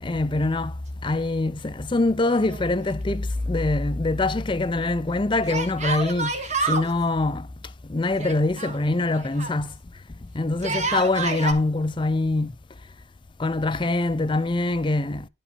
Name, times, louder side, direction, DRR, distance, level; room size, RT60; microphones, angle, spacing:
voice 1, 0.0-0.7 1.0-6.3 6.6-7.5 7.8-9.7 10.3-12.5 13.4-15.3, left 2 dB, 25° left, 0.5 m, -24 dB
Yell, 2.2-3.1 3.4-3.5 5.5-6.9 8.2-9.6 10.5-11.5, right 3 dB, 35° right, 1.4 m, -28 dB
10.5 x 5.4 x 5.1 m
head